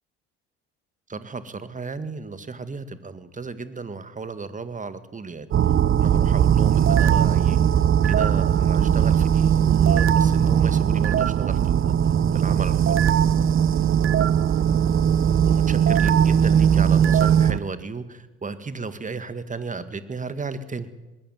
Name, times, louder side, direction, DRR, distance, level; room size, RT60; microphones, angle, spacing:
voice 1, 1.1-5.5 6.0-7.6 8.0-11.9 12.3-13.2 15.4-20.9, right 4 dB, 25° right, 12 dB, 1.9 m, -34 dB
sound 1, 5.5-17.6, right 9 dB, 40° right, 0.9 m, -19 dB
20.5 x 15.5 x 9.4 m, 1.1 s
hypercardioid pair, 60°, 33 cm